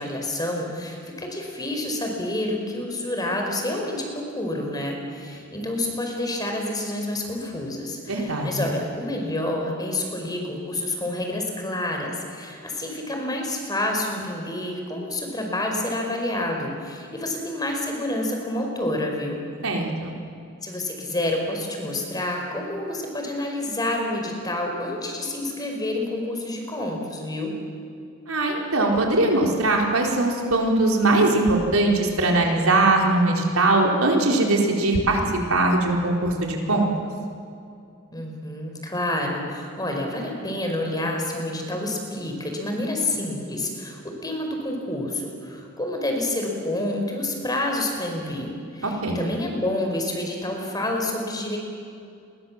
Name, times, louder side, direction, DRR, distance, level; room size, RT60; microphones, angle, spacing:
voice 1, 0.0-19.4 20.6-27.6 38.1-51.6, left 1 dB, 20° left, 2 dB, 4.8 m, -28 dB
voice 2, 8.1-8.7 19.6-20.1 28.3-35.2 35.5-36.9 48.8-49.2, right 2 dB, 80° right, 0 dB, 4.4 m, -21 dB
30.0 x 23.0 x 7.4 m, 2.5 s
head